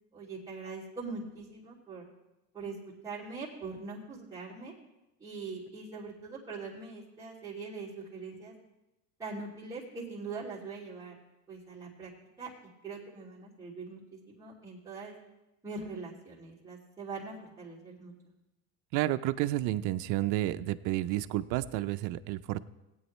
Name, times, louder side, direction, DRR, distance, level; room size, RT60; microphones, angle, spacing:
voice 1, 0.1-2.1 2.5-4.7 5.2-8.5 9.2-11.2 11.5-12.1 12.4-12.5 12.8-15.1 15.6-18.1, right 4 dB, 10° right, -8 dB, 2.7 m, -42 dB
voice 2, 18.9-22.6, right 15 dB, 55° right, 11 dB, 0.5 m, -31 dB
17.5 x 8.9 x 3.2 m, 0.96 s
supercardioid pair, 130°, 36 cm